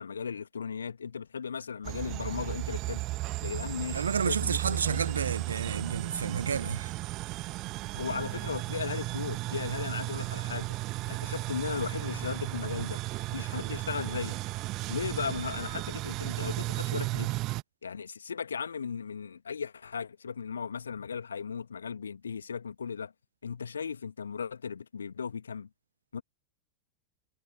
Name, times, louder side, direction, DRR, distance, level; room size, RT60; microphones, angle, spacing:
voice 1, 0.0-3.0 3.4-5.0 7.9-10.7 11.1-13.0 13.3-14.4 14.9-17.3 17.8-23.1 23.4-25.7 26.1-26.2, left 6 dB, 70° left, 2.5 m, -36 dB
sound 1, 1.8-17.6, right 19 dB, 40° right, 1.9 m, -35 dB
voice 2, 3.9-6.9, right 6 dB, 70° right, 0.6 m, -30 dB
figure-of-eight pair, 90°, 0 cm